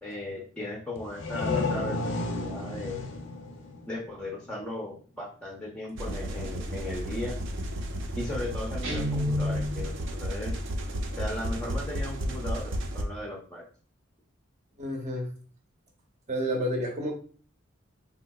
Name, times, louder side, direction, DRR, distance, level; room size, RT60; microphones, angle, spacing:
voice 1, 0.0-3.0 3.9-7.4 8.2-10.5 11.2-13.6, left 1 dB, 5° left, -1 dB, 0.5 m, -37 dB
sound 1, 1.0-4.6, left 3 dB, 60° left, 0.5 m, -32 dB
sound 2, 6.0-13.0, equal, 65° right, 0.5 m, -33 dB
Guitar, 8.8-10.0, left 1 dB, 85° right, 1.1 m, -29 dB
voice 2, 14.8-15.3 16.3-17.1, equal, 35° right, 0 dB, 0.7 m, -30 dB
3.6 x 2.7 x 2.3 m, 0.42 s
head